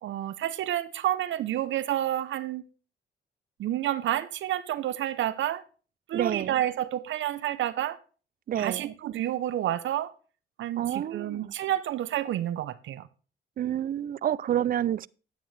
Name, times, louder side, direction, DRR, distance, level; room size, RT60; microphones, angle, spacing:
voice 1, 0.0-2.6 3.6-5.6 6.1-8.0 8.6-10.1 10.6-13.1, right 12 dB, 70° right, 0.7 m, -29 dB
voice 2, 6.1-6.5 8.5-8.9 10.8-11.5 13.6-15.1, right 11 dB, 45° right, 0.4 m, -28 dB
10.5 x 9.3 x 3.2 m
cardioid pair, 90°, 20 cm